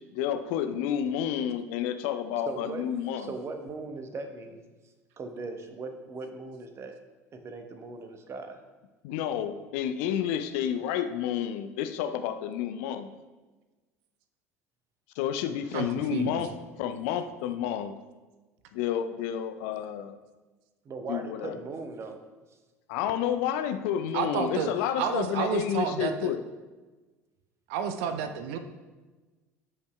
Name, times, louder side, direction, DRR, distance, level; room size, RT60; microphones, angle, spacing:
voice 1, 0.1-3.3 9.0-13.1 15.2-17.9 18.7-20.2 21.1-21.6 22.9-26.4, left 9 dB, 60° left, 8 dB, 0.5 m, -30 dB
voice 2, 2.5-2.9 3.2-4.6 5.2-7.0 7.3-8.6 15.7-15.9 16.8-16.9 20.8-22.2, right 3 dB, 35° right, 6 dB, 1.0 m, -39 dB
voice 3, 15.7-16.4 24.1-24.7 25.0-26.3 27.7-28.6, right 7 dB, 60° right, 8 dB, 0.6 m, -30 dB
16.5 x 5.4 x 2.3 m, 1.2 s
figure-of-eight pair, 65°, 8 cm